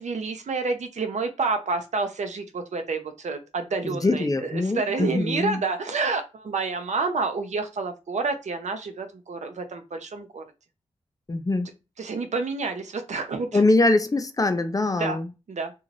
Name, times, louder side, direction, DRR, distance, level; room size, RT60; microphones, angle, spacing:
voice 1, 0.0-10.4 12.0-13.6 14.9-15.2 15.5-15.7, right 4 dB, 70° right, 0.6 m, -29 dB
voice 2, 3.8-5.6 11.3-11.7 13.5-15.3, left 2 dB, 30° left, 0.5 m, -23 dB
2.5 x 2.3 x 3.2 m
cardioid pair, 45°, 13 cm